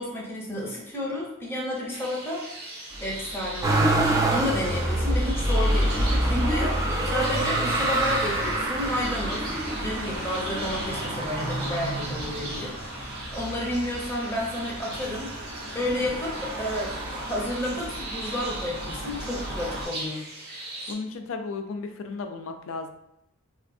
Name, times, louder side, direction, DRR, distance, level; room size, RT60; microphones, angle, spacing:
voice 1, 0.0-2.5 3.0-15.3 15.7-20.2, left 1 dB, 10° left, -4 dB, 0.7 m, -31 dB
sound 1, 1.9-20.9, right 2 dB, 45° right, 0.6 m, -40 dB
sound 2, 2.9-19.9, equal, 85° right, 0.8 m, -34 dB
Motor vehicle (road), 3.6-12.8 13.4-14.2 14.4-15.6 16.6-16.7, right 1 dB, 15° right, 0.3 m, -27 dB
voice 2, 20.9-22.9, left 4 dB, 65° left, 6 dB, 0.4 m, -34 dB
3.3 x 2.4 x 2.6 m, 0.80 s
head